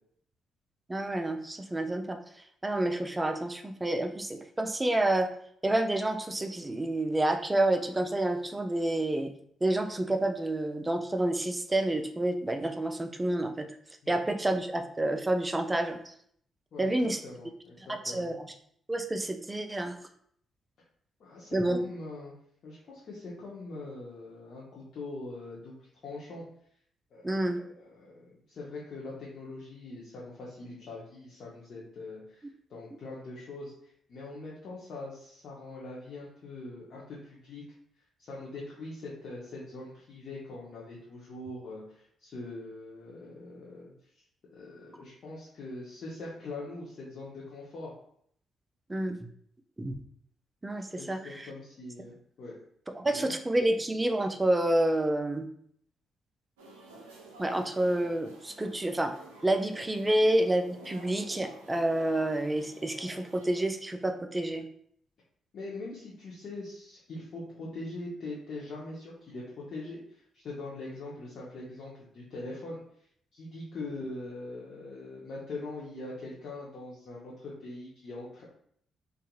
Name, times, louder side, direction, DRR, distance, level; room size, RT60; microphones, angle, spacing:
voice 1, 0.9-2.2 2.6-5.3 5.6-9.3 9.6-13.7 14.1-16.1 16.8-17.2 18.0-18.5 18.9-19.9 21.5-21.8 27.2-27.6 48.9-49.2 49.8-49.9 50.6-51.5 53.0-55.5 57.4-59.1 59.4-64.7, right 1 dB, 20° right, 7 dB, 0.4 m, -29 dB
voice 2, 17.2-18.3 21.2-22.3 22.6-26.4 27.1-32.4 32.7-37.6 38.2-43.9 44.5-47.9 50.9-52.6 53.1-53.4 65.5-72.8 73.3-78.4, left 2 dB, 55° left, -6 dB, 0.6 m, -42 dB
sound 1, 56.6-63.6, right 2 dB, 80° right, 0.4 m, -50 dB
2.7 x 2.4 x 2.3 m, 0.66 s
hypercardioid pair, 40°, 0 cm